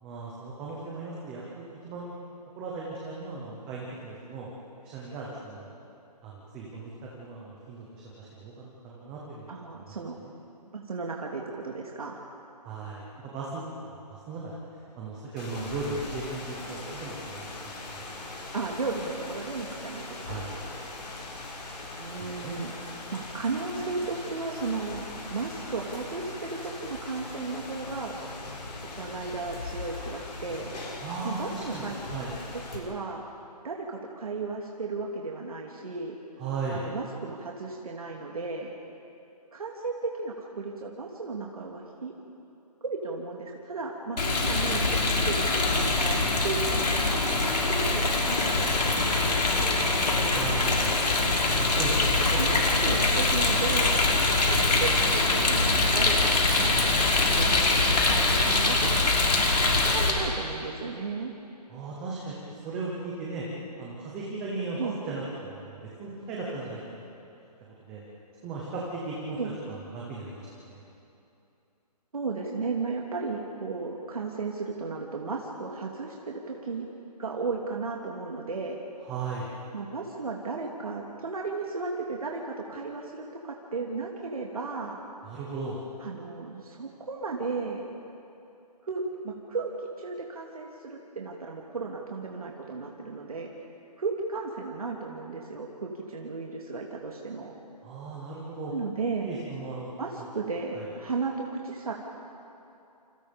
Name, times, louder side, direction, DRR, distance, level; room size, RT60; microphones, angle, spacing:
voice 1, 0.0-2.1 2.6-4.5 4.8-5.7 6.2-6.9 7.2-9.5 9.7-9.9 10.2-10.3 12.6-13.6 13.9-14.6 15.0-18.2 20.2-20.6 22.2-22.6 31.0-32.3 36.4-36.8 50.3-50.7 51.6-52.7 61.7-63.4 63.8-66.8 67.2-67.3 67.8-68.0 68.4-69.4 69.7-70.8 79.0-79.5 85.2-85.8 97.8-98.7 99.2-99.9 100.2-100.3 100.7-100.9, right 3 dB, 5° right, -4 dB, 0.7 m, -37 dB
voice 2, 9.5-10.1 10.7-12.2 18.5-20.0 20.3-20.8 22.0-22.7 23.1-25.0 25.3-28.1 29.0-30.7 31.2-32.0 32.7-33.2 33.6-36.2 36.7-38.7 39.5-42.1 42.8-47.2 47.7-51.0 52.3-54.0 54.4-57.5 58.0-59.1 59.7-61.3 64.8-65.0 69.4-69.5 72.1-76.9 77.2-78.8 79.7-85.0 86.0-87.8 88.8-93.5 94.0-97.6 98.7-99.3 100.0-101.9, right 4 dB, 60° right, -1 dB, 2.8 m, -35 dB
Rain, 15.4-32.8, left 2 dB, 90° left, 6.2 m, -40 dB
Rain 2, 44.2-60.1, left 2 dB, 75° left, 5.6 m, -23 dB
29.0 x 28.5 x 5.2 m, 2.8 s
hypercardioid pair, 180°, 21 cm